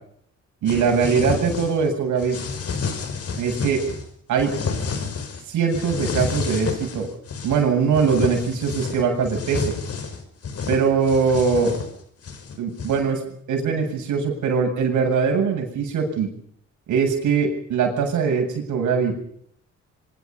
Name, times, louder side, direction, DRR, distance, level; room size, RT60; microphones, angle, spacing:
sound 1, 0.6-1.9 2.2-4.0 4.4-5.4 5.7-7.6 7.9-13.1, left 5 dB, 55° left, 5.6 m, -30 dB
voice 1, 0.6-2.4 3.4-3.8 4.3-4.5 5.5-7.1 7.4-9.7 10.7-11.7 12.6-13.2 13.5-16.3 16.9-19.2, right 5 dB, 80° right, 3 dB, 7.9 m, -21 dB
24.5 x 23.5 x 5.6 m, 0.67 s
cardioid pair, 90°, 30 cm